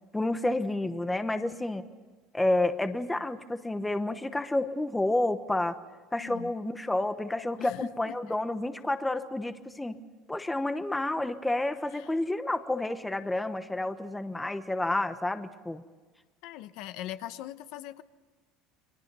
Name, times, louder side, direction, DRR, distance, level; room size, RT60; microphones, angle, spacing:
voice 1, 0.1-1.9 2.3-5.8 6.1-10.0 10.3-15.8, left 2 dB, 5° left, 10 dB, 1.0 m, -30 dB
voice 2, 6.2-6.5 7.6-8.4 11.9-12.1 16.4-18.0, left 13 dB, 60° left, 12 dB, 1.0 m, -41 dB
29.5 x 24.5 x 5.5 m, 1.3 s
cardioid pair, 165°, 0 cm